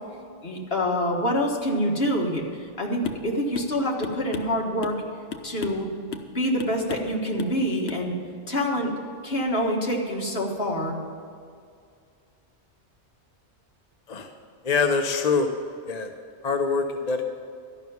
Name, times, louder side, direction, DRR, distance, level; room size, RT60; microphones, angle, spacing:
voice 1, 0.4-2.4 2.8-5.0 5.4-5.9 6.3-8.2 8.5-8.9 9.2-11.0, equal, 55° left, -1 dB, 1.8 m, -26 dB
sound 1, 3.0-3.3 3.5-3.7 4.0-5.0 5.3-5.8 6.1-6.3 6.6-7.1 7.4-7.6 7.9-8.0, left 7 dB, 80° left, 1.1 m, -35 dB
voice 2, 14.6-15.5 15.9-16.1 16.4-17.2, left 4 dB, 40° left, 4 dB, 0.7 m, -24 dB
13.0 x 5.8 x 9.3 m, 2.2 s
omnidirectional pair, 1.2 m